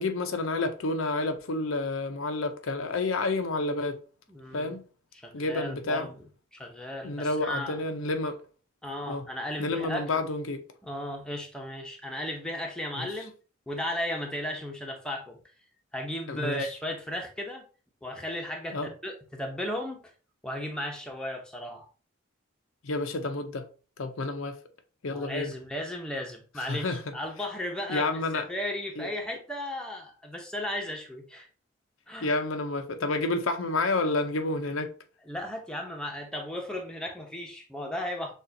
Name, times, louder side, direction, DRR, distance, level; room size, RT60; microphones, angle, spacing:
voice 1, 0.0-4.0 4.5-4.8 5.3-6.1 7.0-8.4 9.0-9.3 9.6-10.6 13.0-13.1 16.3-16.6 18.7-18.9 22.8-23.7 24.0-24.6 25.0-25.5 26.6-27.0 27.9-28.5 29.0-29.1 32.2-34.9, left 2 dB, 80° left, 0.6 m, -29 dB
voice 2, 4.3-4.7 5.2-6.1 6.5-7.8 8.8-10.0 10.8-13.3 13.7-15.4 15.9-17.6 18.0-20.0 20.4-21.9 25.1-31.5 32.1-32.3 35.3-38.3, left 1 dB, 5° left, 0.7 m, -35 dB
6.3 x 2.4 x 2.8 m
head